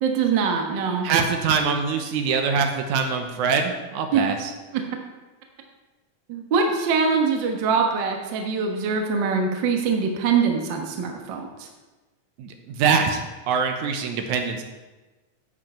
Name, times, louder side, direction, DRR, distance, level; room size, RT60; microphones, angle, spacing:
voice 1, 0.0-1.1 4.1-4.2 6.3-11.7, right 5 dB, 55° right, 3 dB, 1.4 m, -23 dB
voice 2, 1.0-4.5 12.4-14.6, right 5 dB, 80° right, 5 dB, 2.3 m, -24 dB
11.0 x 7.9 x 4.4 m, 1.2 s
omnidirectional pair, 3.5 m